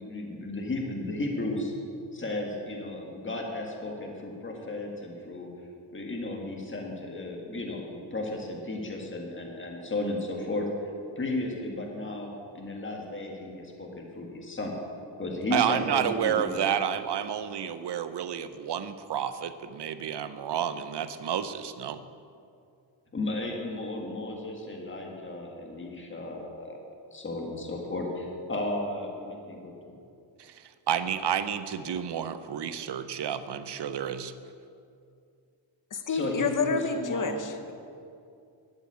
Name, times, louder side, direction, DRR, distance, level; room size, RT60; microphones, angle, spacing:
voice 1, 0.0-1.7 2.1-5.5 5.9-10.7 11.2-12.3 12.5-14.7 15.2-16.6 23.1-26.8 27.1-29.3 31.8-32.0 36.1-37.5, left 2 dB, 25° left, 0 dB, 1.7 m, -34 dB
voice 2, 15.5-22.0 30.9-34.3, right 9 dB, 60° right, 12 dB, 0.7 m, -30 dB
voice 3, 35.9-37.7, left 4 dB, 40° left, 7 dB, 1.0 m, -29 dB
12.0 x 7.9 x 8.6 m, 2.5 s
wide cardioid pair, 165°, 47 cm